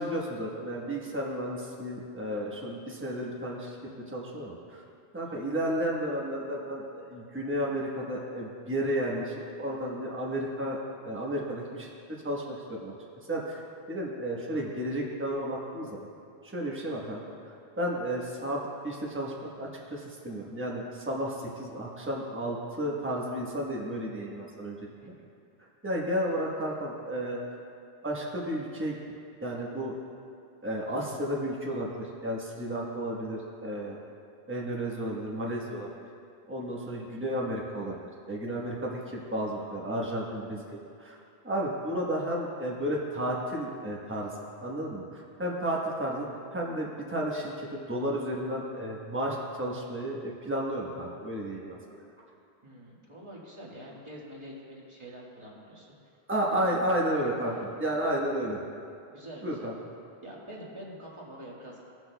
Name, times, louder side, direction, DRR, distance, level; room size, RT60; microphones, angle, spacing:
voice 1, 0.0-3.8 4.1-4.8 5.1-11.9 12.2-12.9 13.3-13.6 13.9-16.0 16.4-24.9 25.8-27.4 28.0-29.0 29.4-29.9 30.6-34.0 34.5-35.9 36.5-38.0 38.3-41.2 41.4-44.3 44.6-46.3 46.5-52.0 56.3-58.6 59.4-59.7, right 1 dB, 10° right, -3 dB, 1.1 m, -32 dB
voice 2, 52.6-56.0 56.4-57.0 57.5-57.7 59.1-59.7 60.2-61.8, equal, 30° right, -5 dB, 1.6 m, -46 dB
17.5 x 6.2 x 2.3 m, 2.5 s
omnidirectional pair, 1.1 m